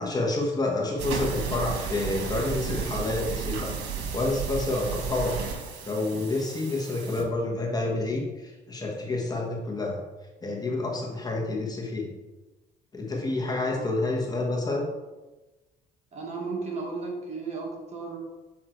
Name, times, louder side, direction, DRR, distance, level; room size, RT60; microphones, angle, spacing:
voice 1, 0.0-5.3 5.8-10.0 10.4-12.1 12.9-14.9, left 2 dB, 25° left, -1 dB, 1.3 m, -29 dB
sound 1, 1.0-7.2, right 6 dB, 90° right, 1.1 m, -33 dB
voice 2, 16.1-18.2, right 4 dB, 40° right, -1 dB, 1.7 m, -34 dB
6.4 x 3.8 x 4.5 m, 1.1 s
cardioid pair, 110°, 17 cm